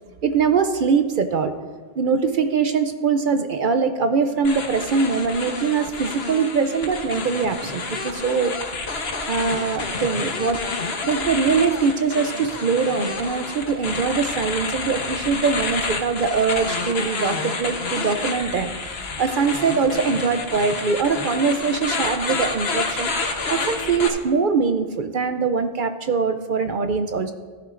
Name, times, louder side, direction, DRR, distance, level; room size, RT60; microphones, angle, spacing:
voice 1, 0.2-1.6 2.0-8.5 9.3-10.6 11.0-18.7 19.2-27.3, right 5 dB, 60° right, 8 dB, 0.7 m, -22 dB
sound 1, 4.4-24.1, left 3 dB, 75° left, 1.3 m, -29 dB
16.0 x 10.5 x 2.5 m, 1.4 s
omnidirectional pair, 1.1 m